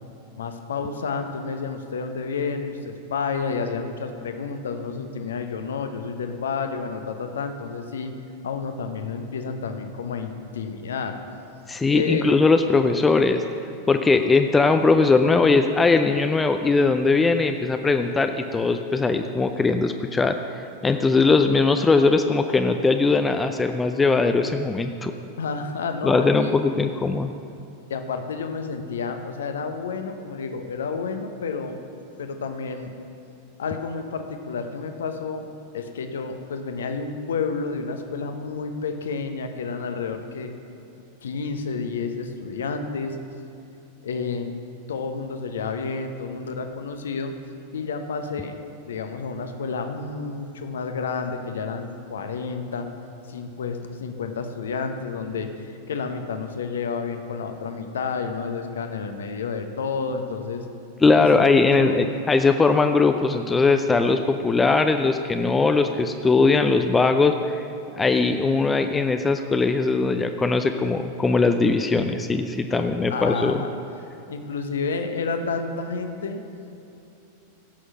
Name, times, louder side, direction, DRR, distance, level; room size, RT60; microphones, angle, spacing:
voice 1, 0.4-8.1 8.4-11.2 11.9-12.3 25.4-26.6 27.9-31.8 32.2-32.9 33.6-35.5 35.7-40.5 41.2-43.2 44.0-44.5 44.9-47.3 47.7-48.6 48.8-52.9 53.3-60.7 61.1-62.1 72.0-72.2 72.7-73.8 74.3-76.4, left 5 dB, 65° left, 7 dB, 0.9 m, -30 dB
voice 2, 11.7-13.4 13.9-20.4 20.8-25.1 26.0-27.3 61.0-67.6 67.9-73.6, left 3 dB, 15° left, 7 dB, 0.5 m, -20 dB
16.0 x 6.4 x 6.1 m, 2.8 s
figure-of-eight pair, 90°, 0 cm